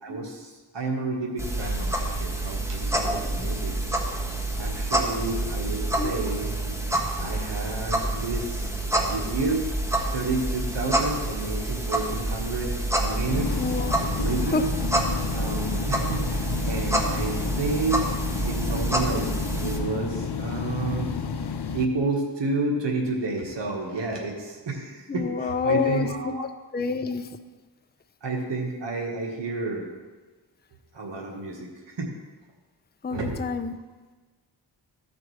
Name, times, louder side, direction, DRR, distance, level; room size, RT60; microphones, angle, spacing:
voice 1, 0.0-3.8 4.2-6.8 7.2-9.6 10.1-13.7 14.1-14.7 15.3-18.1 18.5-19.3 19.6-21.1 21.7-26.4 28.2-29.9 30.9-32.1 33.1-33.5, right 3 dB, 70° right, 0 dB, 1.6 m, -30 dB
sound 1, 1.4-19.8, right 1 dB, 5° right, 1.5 m, -28 dB
sound 2, 13.2-21.8, left 6 dB, 60° left, 0.8 m, -31 dB
voice 2, 13.6-14.0 14.5-14.6 25.1-26.1 26.4-26.5 26.7-27.3 33.0-33.7, left 5 dB, 20° left, 8 dB, 0.6 m, -27 dB
15.0 x 5.1 x 3.2 m, 1.3 s
cardioid pair, 40°, 45 cm